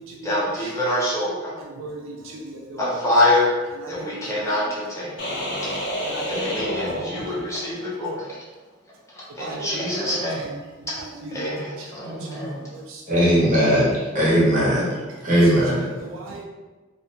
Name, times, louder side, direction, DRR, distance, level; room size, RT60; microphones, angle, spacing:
voice 1, 0.2-1.5 2.8-3.5 3.9-5.1 6.3-8.3 9.1-10.5 11.3-12.6, left 1 dB, 15° left, 0.6 m, -25 dB
voice 2, 1.8-2.1 2.4-2.8 6.0-7.1 9.4-9.7 10.0-10.1 11.3-11.4 12.3-12.4 16.0-16.4, right 2 dB, 75° right, 0.4 m, -36 dB
sound 1, 5.2-7.8, equal, 60° left, 0.7 m, -29 dB
voice 3, 13.1-14.9 15.2-15.8, equal, 40° right, 0.8 m, -18 dB
2.5 x 2.2 x 2.7 m
head